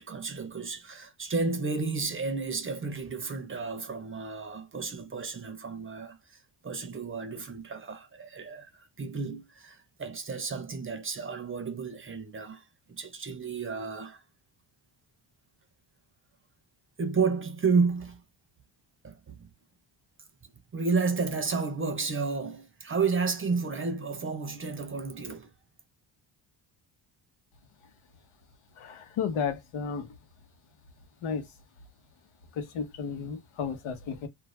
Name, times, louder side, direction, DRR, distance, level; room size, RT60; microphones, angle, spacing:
voice 1, 0.0-6.2 6.6-14.2 17.0-18.2 19.0-19.5 20.7-25.5, right 4 dB, 25° right, 0.6 m, -31 dB
voice 2, 28.8-30.1 31.2-31.4 32.6-34.3, left 6 dB, 90° left, 1.0 m, -33 dB
2.5 x 2.3 x 3.1 m
cardioid pair, 115°, 47 cm